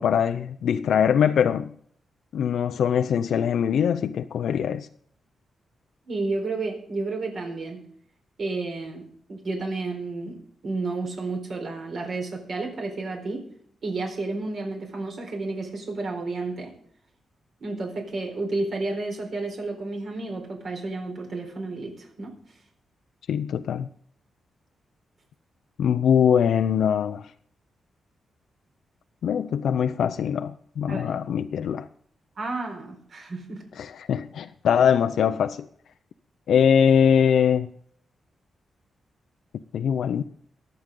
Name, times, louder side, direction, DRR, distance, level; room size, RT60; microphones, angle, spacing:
voice 1, 0.0-1.7 2.3-4.9 23.3-23.9 25.8-27.3 29.2-31.9 33.8-35.7 36.5-37.7 39.7-40.2, left 8 dB, 80° left, 0.5 m, -22 dB
voice 2, 6.1-7.8 8.4-9.0 9.3-10.4 10.6-13.4 13.8-16.7 17.6-22.3 30.9-31.2 32.4-33.6, right 3 dB, 55° right, 4.2 m, -31 dB
23.5 x 7.9 x 3.8 m
cardioid pair, 115°, 0 cm